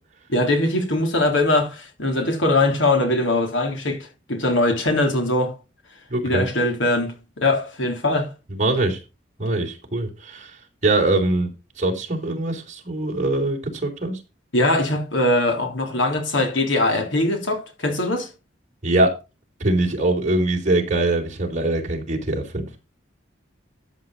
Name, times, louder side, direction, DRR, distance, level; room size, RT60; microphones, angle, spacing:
voice 1, 0.3-5.5 6.2-8.3 14.5-18.3, left 2 dB, 80° left, 3.4 m, -21 dB
voice 2, 6.1-6.4 8.5-9.0 9.4-10.6 10.8-11.5 11.8-14.2 18.8-19.2 19.6-22.8, right 2 dB, 40° right, 3.8 m, -22 dB
13.0 x 7.7 x 4.1 m
head